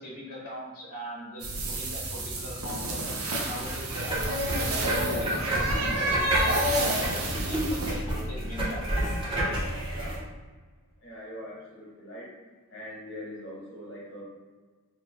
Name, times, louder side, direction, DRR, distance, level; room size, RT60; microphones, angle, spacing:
voice 1, 0.0-6.5 7.1-8.9, left 1 dB, 85° left, -6 dB, 0.8 m, -40 dB
sound 1, 1.4-7.9, right 1 dB, 65° right, 0.6 m, -30 dB
sound 2, 3.7-10.2, right 1 dB, 25° right, 0.8 m, -30 dB
voice 2, 9.9-10.2 11.0-12.3 12.7-14.2, equal, 60° left, -4 dB, 1.2 m, -42 dB
3.1 x 2.2 x 3.7 m, 1.4 s
head